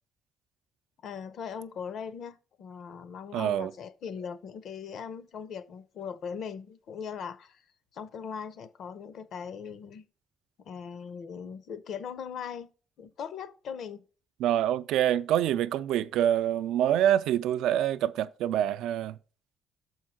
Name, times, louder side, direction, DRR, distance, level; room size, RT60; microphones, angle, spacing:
voice 1, 1.0-7.6 7.9-10.1 10.7-12.7 13.0-14.1, left 7 dB, 55° left, 0.7 m, -39 dB
voice 2, 3.3-3.7 14.4-19.2, right 11 dB, 90° right, 0.4 m, -26 dB
6.2 x 4.5 x 6.1 m
cardioid pair, 160°, 0 cm